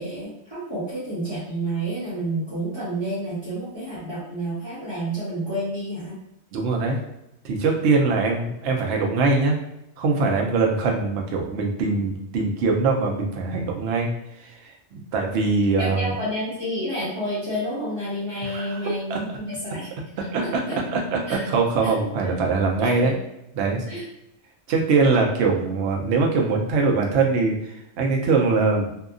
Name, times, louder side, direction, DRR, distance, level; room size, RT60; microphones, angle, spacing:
voice 1, 0.0-6.1 15.8-19.9 20.4-20.8 21.3-21.5 21.8-22.0 22.8-23.1 23.9-24.0, right 1 dB, 25° right, -11 dB, 0.9 m, -30 dB
voice 2, 6.5-7.0 7.4-9.6 10.0-14.1 14.4-16.1 18.4-19.4 20.2-23.1 23.5-23.8 24.7-28.9, right 4 dB, 65° right, 1 dB, 0.8 m, -22 dB
2.7 x 2.3 x 2.4 m, 0.83 s
omnidirectional pair, 1.4 m